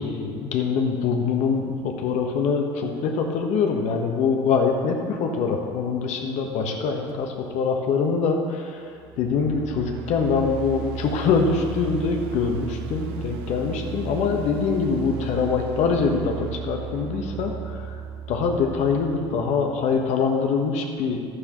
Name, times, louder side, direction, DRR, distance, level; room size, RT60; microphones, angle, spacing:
voice 1, 0.0-18.0 18.3-21.3, left 5 dB, 60° left, 3 dB, 1.3 m, -24 dB
sound 1, 8.9-20.0, right 8 dB, 70° right, 0.7 m, -35 dB
12.0 x 9.5 x 3.2 m, 2.2 s
hypercardioid pair, 70°, 14 cm